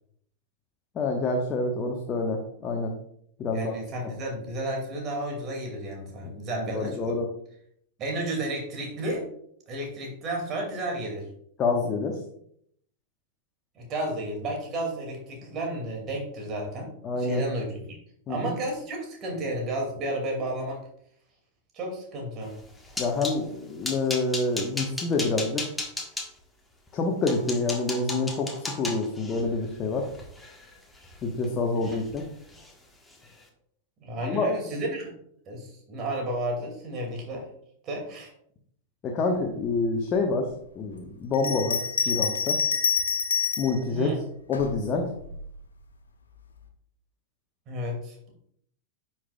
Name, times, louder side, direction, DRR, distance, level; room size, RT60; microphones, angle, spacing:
voice 1, 0.9-2.9 3.4-3.7 6.7-7.3 11.6-12.2 17.0-17.4 18.3-18.6 23.0-25.6 26.9-30.1 31.2-32.2 34.2-34.5 39.0-40.5 40.7-41.8 42.0-42.6 43.6-44.1 44.5-45.1, left 3 dB, 30° left, 0 dB, 1.2 m, -27 dB
voice 2, 3.5-7.2 8.0-9.3 9.7-11.2 13.8-16.9 17.2-18.0 18.3-20.8 21.7-22.5 31.8-32.0 34.0-35.1 35.5-37.5 37.8-38.3 43.9-44.2 47.7-48.3, right 1 dB, 35° right, 1 dB, 2.4 m, -32 dB
sound 1, 22.5-23.4 23.8-26.3 26.9-27.0 27.3-31.5 31.8-32.2 32.5-32.7 33.1-33.3, left 2 dB, 5° left, 1.4 m, -35 dB
Bell, 41.3-43.8 44.5-45.4, left 6 dB, 70° left, 0.8 m, -27 dB
9.8 x 5.9 x 2.4 m, 0.68 s
figure-of-eight pair, 90°, 0 cm